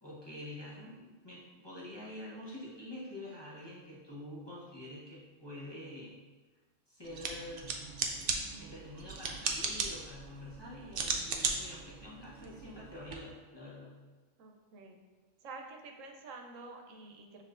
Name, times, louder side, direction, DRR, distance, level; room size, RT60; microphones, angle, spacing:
voice 1, 0.0-6.1 6.9-7.7 8.6-13.9, left 1 dB, 25° left, -8 dB, 0.8 m, -47 dB
sound 1, 7.0-13.1, right 4 dB, 60° right, 0.6 m, -37 dB
voice 2, 10.7-11.2 14.4-15.0 15.4-17.4, right 3 dB, 85° right, 3 dB, 1.0 m, -49 dB
6.7 x 3.0 x 2.4 m, 1.3 s
omnidirectional pair, 1.3 m